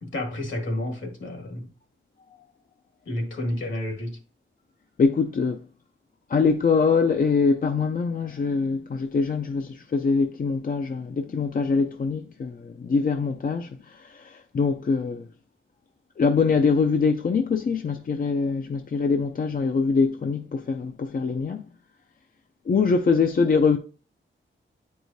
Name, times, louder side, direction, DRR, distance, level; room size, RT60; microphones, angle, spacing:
voice 1, 0.0-1.7 3.0-4.2, left 1 dB, 70° left, 1.6 m, -30 dB
voice 2, 5.0-5.6 6.3-15.3 16.2-21.6 22.7-23.8, left 5 dB, 45° left, 0.4 m, -23 dB
9.0 x 4.7 x 2.6 m
wide cardioid pair, 115°, 21 cm